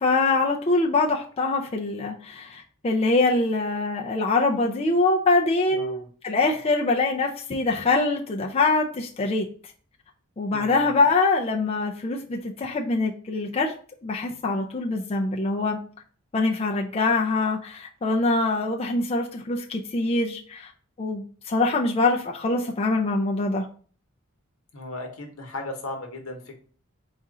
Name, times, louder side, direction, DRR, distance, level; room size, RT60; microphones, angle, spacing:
voice 1, 0.0-9.5 10.4-13.7 14.0-15.8 16.3-20.7 21.0-23.7, left 3 dB, 30° left, 0.4 m, -24 dB
voice 2, 5.7-6.1 10.5-11.0 24.7-26.6, left 2 dB, 85° left, 1.0 m, -36 dB
4.2 x 2.4 x 3.7 m
head